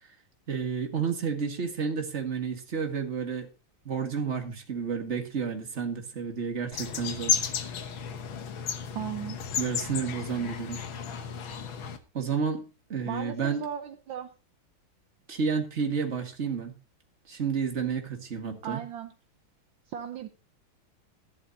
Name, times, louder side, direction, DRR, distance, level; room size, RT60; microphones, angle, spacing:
voice 1, 0.5-3.5 3.9-7.3 9.6-10.8 12.1-12.6 12.9-13.6 15.3-16.8 17.3-18.8, right 6 dB, 35° right, 3 dB, 2.1 m, -31 dB
sound 1, 6.7-12.0, left 6 dB, 70° left, 1.9 m, -33 dB
voice 2, 8.9-9.4 13.1-14.3 18.6-19.1 19.9-20.3, right 9 dB, 70° right, 7 dB, 1.6 m, -36 dB
14.5 x 11.5 x 2.8 m, 0.31 s
omnidirectional pair, 2.3 m